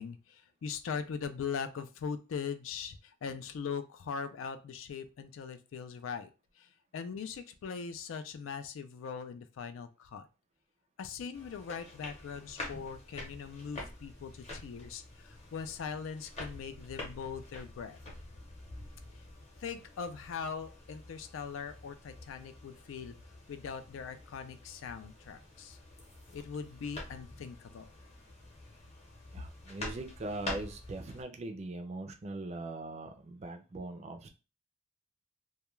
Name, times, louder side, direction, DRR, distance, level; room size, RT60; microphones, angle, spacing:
voice 1, 0.0-6.3 6.6-6.7 6.9-10.3 11.0-18.0 19.6-23.2 23.5-25.8 26.3-27.9, left 6 dB, 80° left, 0.3 m, -41 dB
sound 1, 11.3-31.2, left 1 dB, 35° left, 0.8 m, -47 dB
voice 2, 29.3-34.3, right 2 dB, 35° right, 0.4 m, -41 dB
2.2 x 2.2 x 3.0 m
head